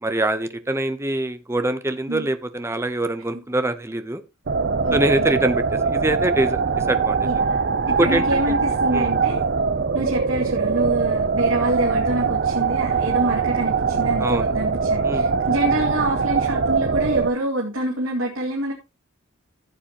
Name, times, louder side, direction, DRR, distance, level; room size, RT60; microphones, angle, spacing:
voice 1, 0.0-4.2 4.9-6.6 6.9-7.2 8.0-8.6 8.9-9.1 14.2-14.5 15.0-15.2, right 1 dB, 15° right, 0.8 m, -24 dB
sound 1, 4.5-17.3, right 5 dB, 50° right, 0.6 m, -22 dB
voice 2, 4.8-5.3 7.2-9.5 9.9-18.7, right 1 dB, 85° right, 2.4 m, -26 dB
14.5 x 8.3 x 3.0 m
head